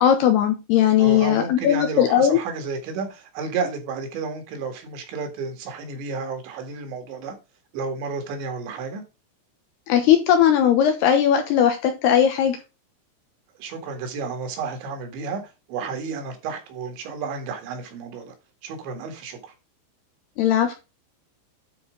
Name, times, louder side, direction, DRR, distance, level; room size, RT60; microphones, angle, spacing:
voice 1, 0.0-2.4 9.9-12.6 20.4-20.7, left 9 dB, 75° left, 2.6 m, -18 dB
voice 2, 1.0-7.4 7.7-9.0 13.6-15.4 15.7-18.3 18.6-19.5, right 5 dB, 70° right, 4.0 m, -31 dB
9.8 x 4.6 x 5.0 m
omnidirectional pair, 5.5 m